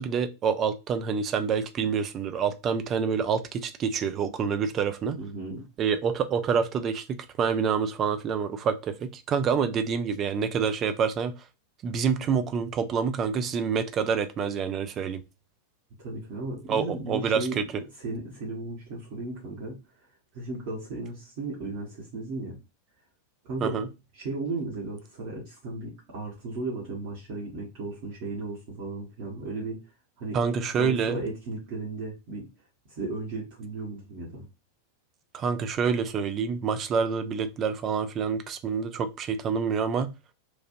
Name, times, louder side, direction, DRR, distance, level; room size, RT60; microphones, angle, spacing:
voice 1, 0.0-5.2 5.8-11.3 11.8-15.2 16.7-17.6 23.6-23.9 30.3-31.2 35.3-40.1, right 6 dB, 30° right, 0.4 m, -27 dB
voice 2, 5.2-5.6 16.0-17.6 18.0-19.8 20.3-22.6 23.4-23.8 24.1-29.8 30.2-30.4 30.7-32.5 32.9-34.4, right 2 dB, 50° right, 1.1 m, -35 dB
3.1 x 2.4 x 2.6 m
figure-of-eight pair, 90°, 0 cm